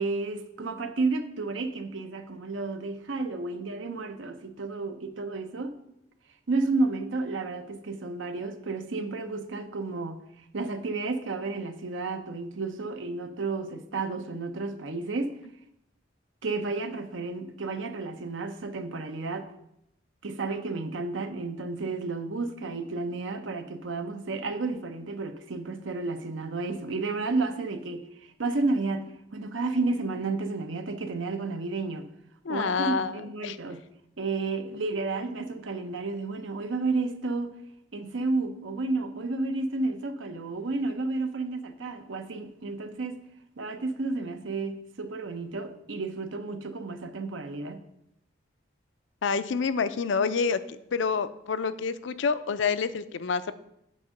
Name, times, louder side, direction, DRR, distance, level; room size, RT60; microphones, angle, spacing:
voice 1, 0.0-5.7 6.5-10.2 10.5-15.3 16.4-19.5 20.2-28.0 28.4-29.0 29.3-32.1 32.5-33.8 34.2-37.5 37.9-43.2 43.6-47.8, right 3 dB, 85° right, 8 dB, 0.8 m, -31 dB
voice 2, 32.4-33.6 49.2-53.5, left 5 dB, 75° left, 13 dB, 0.5 m, -28 dB
8.6 x 3.7 x 6.4 m, 0.79 s
head